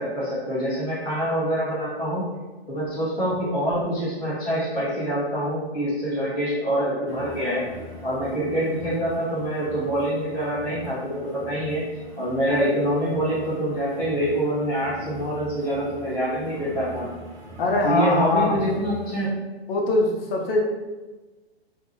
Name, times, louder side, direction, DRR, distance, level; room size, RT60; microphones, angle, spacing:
voice 1, 0.0-2.2 2.7-7.6 8.0-11.8 12.2-17.1 17.8-19.3, equal, 15° left, -10 dB, 1.4 m, -25 dB
sound 1, 7.1-19.3, right 1 dB, 10° right, 0.7 m, -42 dB
voice 2, 17.6-18.6 19.7-20.6, left 2 dB, 60° left, -1 dB, 0.7 m, -22 dB
2.7 x 2.5 x 2.9 m, 1.2 s
hypercardioid pair, 130°, 32 cm